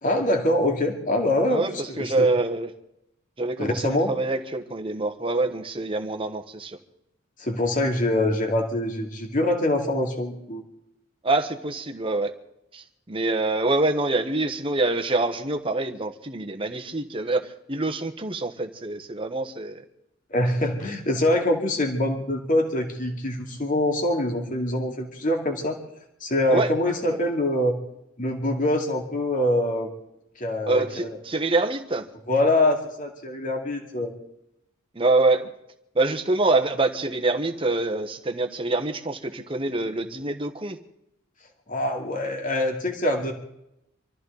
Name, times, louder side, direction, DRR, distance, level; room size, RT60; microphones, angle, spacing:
voice 1, 0.0-2.3 3.6-4.1 7.4-10.6 20.3-25.8 26.2-27.8 28.2-29.9 30.4-31.2 32.3-34.1 41.7-43.3, left 1 dB, 40° left, 2 dB, 2.3 m, -24 dB
voice 2, 1.5-2.7 3.4-6.8 11.2-12.3 12.7-19.8 26.5-26.7 27.0-27.2 30.7-32.1 34.9-35.5 35.9-40.8, right 2 dB, 25° right, 5 dB, 1.2 m, -25 dB
25.5 x 14.0 x 4.0 m, 0.82 s
head